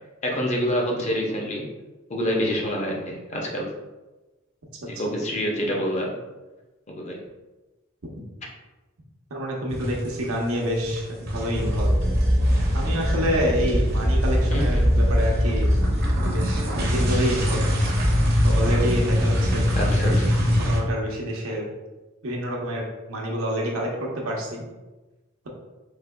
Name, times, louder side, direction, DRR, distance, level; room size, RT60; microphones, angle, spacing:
voice 1, 0.2-1.6 2.1-3.7 4.9-6.1 6.9-7.2 14.5-14.9 19.8-20.4, equal, 35° left, -1 dB, 0.6 m, -27 dB
voice 2, 9.3-11.9 12.7-15.7 16.2-17.7 18.4-19.7 20.6-21.6 22.2-24.6, equal, 85° right, -1 dB, 0.8 m, -28 dB
sound 1, 9.7-10.5 10.7-20.8, equal, 50° right, 0.6 m, -22 dB
4.1 x 2.8 x 2.2 m, 1.1 s
head